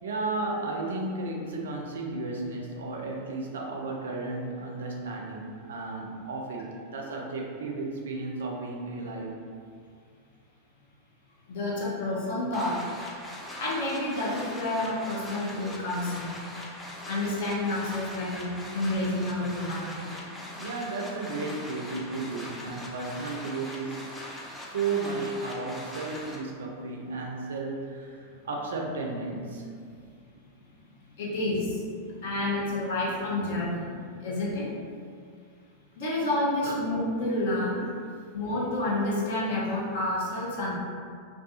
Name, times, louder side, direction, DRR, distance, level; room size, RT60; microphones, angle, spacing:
voice 1, 0.0-9.3 20.6-24.1 24.6-29.7 31.5-31.6 34.1-34.2 36.6-36.8, right 3 dB, 65° right, 0 dB, 0.4 m, -34 dB
voice 2, 11.5-12.9 13.6-16.4 17.1-20.1 31.2-31.8 32.0-34.7 36.0-37.8 38.3-40.7, left 1 dB, 55° left, -5 dB, 0.6 m, -29 dB
sound 1, 12.5-26.4, left 1 dB, 10° left, 0.4 m, -41 dB
2.3 x 2.3 x 2.7 m, 2.1 s
figure-of-eight pair, 90°, 0 cm